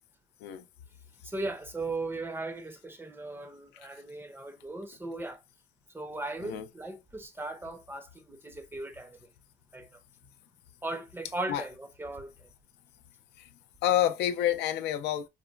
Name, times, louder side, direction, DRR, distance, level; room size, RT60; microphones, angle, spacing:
voice 1, 1.2-5.4 5.9-9.2 9.7-9.9 10.8-12.3, right 2 dB, 15° right, 0.5 m, -38 dB
voice 2, 13.8-15.3, left 11 dB, 80° left, 0.5 m, -28 dB
4.0 x 2.1 x 2.2 m
cardioid pair, 110°, 17 cm